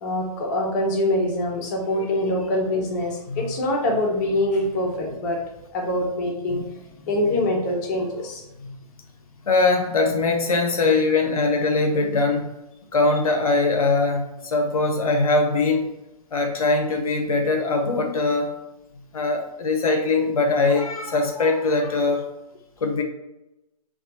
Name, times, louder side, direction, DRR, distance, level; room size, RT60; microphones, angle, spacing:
voice 1, 0.0-5.4 5.7-6.6 7.0-8.4, left 1 dB, 30° left, 0 dB, 0.6 m, -24 dB
voice 2, 9.5-12.5 12.9-15.9 16.3-18.5 19.1-22.2 22.8-23.0, left 3 dB, 65° left, 3 dB, 0.6 m, -22 dB
4.1 x 2.3 x 2.7 m, 0.94 s
figure-of-eight pair, 135°, 20 cm